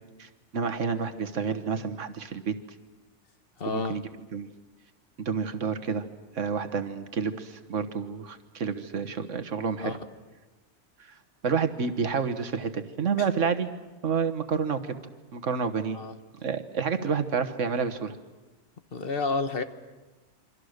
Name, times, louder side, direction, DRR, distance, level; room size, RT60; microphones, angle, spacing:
voice 1, 0.2-2.5 3.7-4.0 4.3-4.5 5.2-6.0 6.3-10.0 11.4-13.7 14.0-15.0 15.3-16.0 16.4-18.2, right 6 dB, 85° right, 8 dB, 1.7 m, -29 dB
voice 2, 3.6-4.0 9.8-10.0 15.9-16.1 17.0-17.2 18.9-19.6, left 4 dB, 50° left, 9 dB, 1.3 m, -30 dB
28.0 x 24.5 x 6.6 m, 1.2 s
omnidirectional pair, 1.2 m